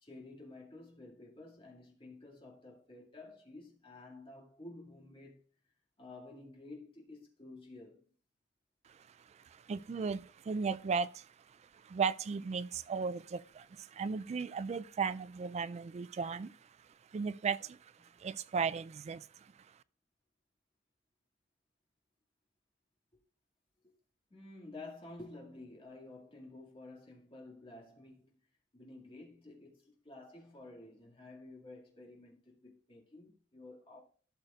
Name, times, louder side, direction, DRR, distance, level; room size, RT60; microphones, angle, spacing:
voice 1, 0.0-5.4 6.0-8.0 18.0-18.2 23.8-23.9 24.3-28.4 28.7-34.0, left 2 dB, 30° left, 2.2 m, -52 dB
voice 2, 8.9-19.8, right 5 dB, 35° right, 0.3 m, -37 dB
12.5 x 6.6 x 2.4 m
head